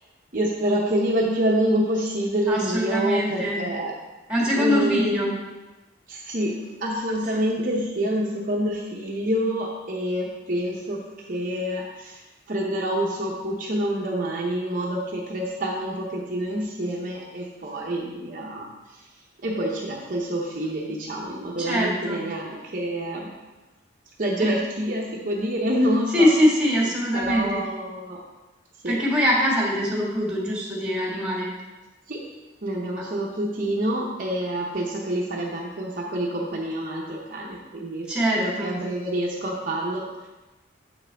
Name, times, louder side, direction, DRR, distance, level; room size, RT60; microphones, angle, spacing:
voice 1, 0.3-3.9 4.5-5.3 6.1-11.0 11.3-12.2 12.5-19.0 19.4-23.3 24.2-26.3 27.1-28.2 28.8-29.0 32.1-32.2 32.6-38.1 38.4-40.0, right 1 dB, 45° right, -2 dB, 0.8 m, -27 dB
voice 2, 2.5-3.6 4.3-5.3 21.6-22.2 24.4-24.5 26.1-27.6 28.8-31.5 33.0-33.1 38.1-38.7, equal, 5° right, -4 dB, 1.7 m, -23 dB
7.7 x 6.0 x 3.4 m, 1.1 s
head